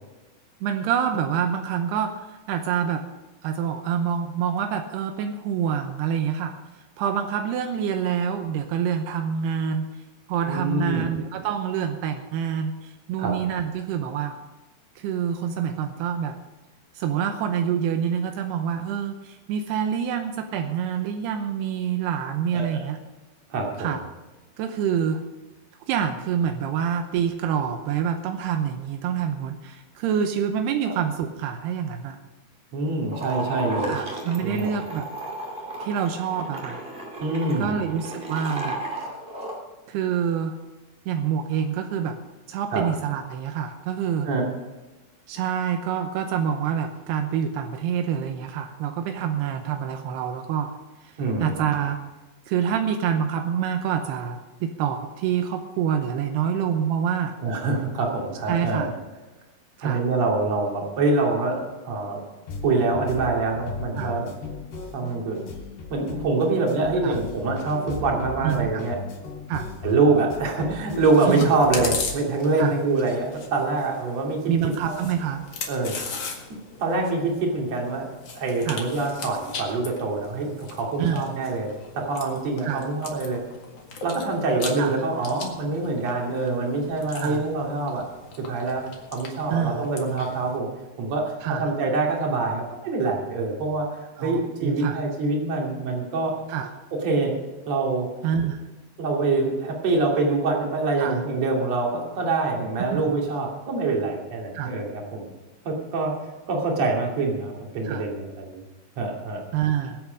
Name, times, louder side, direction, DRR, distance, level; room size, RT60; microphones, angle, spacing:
voice 1, 0.6-3.0 3.4-6.6 7.0-9.9 10.3-14.4 15.0-16.4 16.9-23.0 23.8-24.0 24.6-25.2 25.9-32.2 33.9-35.1 35.8-36.8 37.6-38.8 39.9-40.6 41.1-42.2 42.5-44.3 45.3-50.7 51.0-51.1 51.4-52.0 52.5-57.3 58.5-58.9 59.8-60.0 64.0-64.1 67.0-67.2 68.4-68.9 69.5-69.7 71.3-71.5 72.6-72.7 74.5-75.4 78.7-78.8 81.0-81.2 82.6-82.9 84.8-85.0 87.2-87.4 89.5-89.9 91.4-91.7 94.2-95.0 96.5-96.7 98.2-98.6 101.0-101.2 102.8-103.1 104.5-104.8 107.8-108.1 109.5-110.0, right 8 dB, 85° right, 6 dB, 2.9 m, -26 dB
voice 2, 10.5-11.1 13.2-13.3 22.5-22.9 23.5-24.0 30.8-30.9 32.7-34.0 34.4-34.7 37.2-37.8 42.7-42.8 44.2-44.5 51.2-51.6 57.4-59.0 59.8-62.2 62.6-64.3 64.9-65.4 65.9-69.0 69.8-75.1 75.7-76.0 76.8-78.1 78.3-83.4 84.0-88.1 88.4-88.8 89.1-90.7 91.0-93.9 94.2-96.3 96.9-97.3 97.7-98.1 99.0-105.3 105.7-106.1 106.5-108.6 109.0-109.4, right 3 dB, 45° right, -1 dB, 3.4 m, -25 dB
sound 1, 33.1-39.6, right 1 dB, 20° right, 1.7 m, -34 dB
sound 2, 62.5-72.1, left 4 dB, 90° left, 5.4 m, -36 dB
Chewing mastication, 71.0-90.6, left 4 dB, 50° left, 2.3 m, -38 dB
21.5 x 8.3 x 5.1 m, 1.1 s
omnidirectional pair, 4.7 m